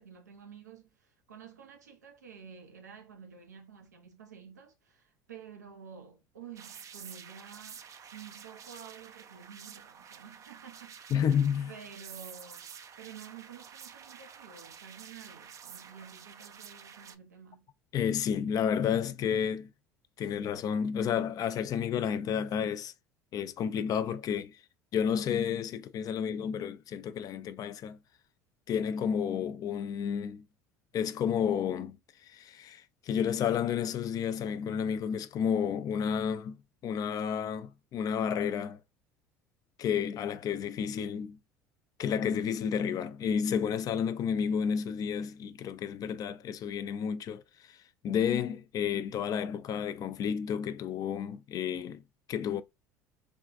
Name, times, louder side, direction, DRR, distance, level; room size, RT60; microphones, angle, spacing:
voice 1, 0.0-12.7 13.0-17.7, right 7 dB, 90° right, 0.6 m, -50 dB
sound 1, 6.6-17.2, right 7 dB, 35° right, 0.4 m, -49 dB
voice 2, 11.1-11.7 17.9-19.7 20.2-22.9 23.3-24.6 24.9-28.0 28.7-30.4 30.9-32.0 32.2-36.6 36.8-38.8 39.8-41.4 42.0-47.4 47.7-47.8 48.0-52.0 52.3-52.6, left 8 dB, 45° left, 0.4 m, -31 dB
3.5 x 2.3 x 2.3 m
hypercardioid pair, 70°, 9 cm